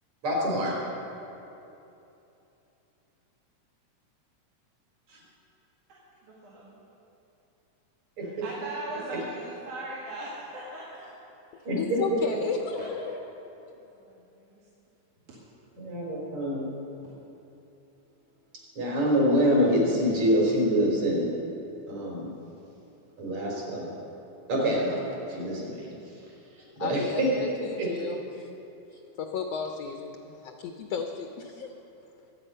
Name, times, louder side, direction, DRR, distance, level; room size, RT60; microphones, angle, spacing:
voice 1, 0.2-0.8 5.1-5.2 8.2-8.3 11.6-11.8 12.1-12.2 15.8-16.7 18.8-21.3 21.9-22.3 23.2-23.9 24.5-26.2 26.5-27.5 27.8-27.9, equal, 60° right, -3 dB, 5.0 m, -26 dB
voice 2, 6.2-6.7 8.2-11.1 12.8-12.9 13.7-14.6 15.2-15.4, right 2 dB, 75° right, -8 dB, 3.7 m, -40 dB
voice 3, 11.8-13.2 26.8-28.6 28.9-31.7, left 6 dB, 70° left, 4 dB, 1.6 m, -34 dB
23.5 x 8.9 x 5.5 m, 2.9 s
omnidirectional pair, 3.6 m